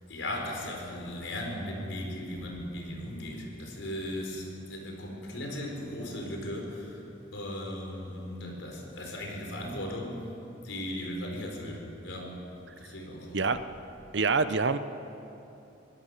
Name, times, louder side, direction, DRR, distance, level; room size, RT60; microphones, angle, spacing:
voice 1, 0.1-7.0 7.3-10.2 10.6-12.4 12.8-13.4, left 1 dB, 75° left, 1 dB, 4.6 m, -37 dB
voice 2, 14.1-14.8, right 4 dB, 65° right, 11 dB, 0.8 m, -25 dB
24.5 x 17.5 x 6.7 m, 2.8 s
head